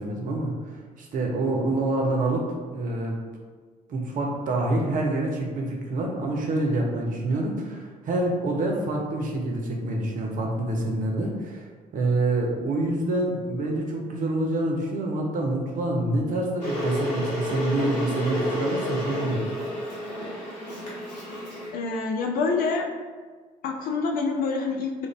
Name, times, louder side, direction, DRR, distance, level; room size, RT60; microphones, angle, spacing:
voice 1, 0.0-3.2 3.9-11.7 11.9-19.5, right 2 dB, 40° right, 0 dB, 0.6 m, -27 dB
Water / Boiling, 16.6-21.7, equal, 85° left, 0.7 m, -30 dB
voice 2, 21.7-22.9 23.6-25.1, left 4 dB, 45° left, 2 dB, 0.4 m, -26 dB
2.5 x 2.1 x 3.1 m, 1.5 s
figure-of-eight pair, 50°, 21 cm